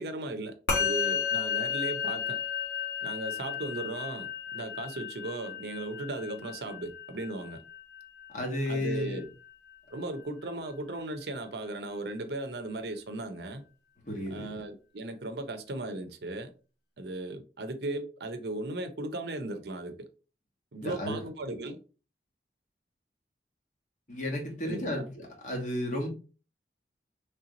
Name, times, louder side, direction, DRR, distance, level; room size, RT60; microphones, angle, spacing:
voice 1, 0.0-2.4 3.0-7.6 8.7-9.2 9.9-13.7 14.3-16.5 17.0-20.1 20.7-21.8 24.6-25.0, right 2 dB, 65° right, 0.6 m, -37 dB
Musical instrument, 0.7-10.2, left 7 dB, 80° left, 1.8 m, -34 dB
voice 2, 8.3-9.2 14.1-14.5 20.8-21.2 24.1-25.0 25.4-26.1, left 1 dB, 45° left, 1.2 m, -32 dB
3.3 x 2.9 x 3.8 m
head